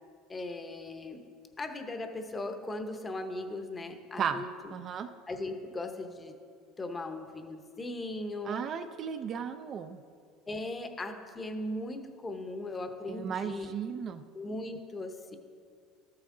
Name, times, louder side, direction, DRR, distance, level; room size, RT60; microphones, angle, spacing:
voice 1, 0.3-1.2 1.6-4.5 5.3-6.3 6.8-8.7 10.5-13.7 14.3-15.4, left 2 dB, 15° left, 6 dB, 0.8 m, -38 dB
voice 2, 4.7-5.1 8.4-10.0 13.1-14.2, right 7 dB, 35° right, 8 dB, 0.4 m, -35 dB
13.0 x 8.6 x 3.7 m, 2.2 s
cardioid pair, 150°, 0 cm